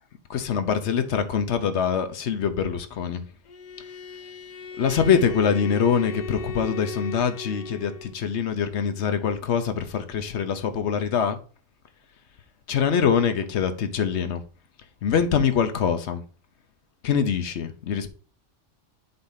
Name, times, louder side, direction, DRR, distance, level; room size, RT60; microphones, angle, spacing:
voice 1, 0.3-3.3 4.8-11.4 12.7-14.4 15.0-16.2 17.0-18.1, left 7 dB, 65° left, 1.0 m, -24 dB
Bowed string instrument, 3.5-8.2, left 3 dB, 50° left, 0.6 m, -37 dB
7.9 x 2.7 x 5.5 m
omnidirectional pair, 1.3 m